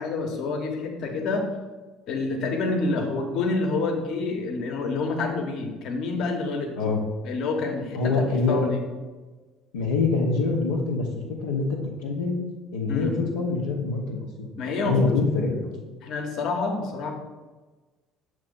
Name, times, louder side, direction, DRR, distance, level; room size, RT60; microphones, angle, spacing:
voice 1, 0.0-1.4 2.1-6.7 7.2-8.1 8.5-8.8 12.9-13.1 14.6-15.1 16.0-17.1, left 3 dB, 65° left, 3 dB, 1.0 m, -27 dB
voice 2, 7.9-8.6 9.7-11.1 11.4-12.4 12.7-14.5 14.8-15.7, left 4 dB, 85° left, -4 dB, 0.7 m, -25 dB
6.7 x 3.0 x 5.3 m, 1.3 s
hypercardioid pair, 60°, 0 cm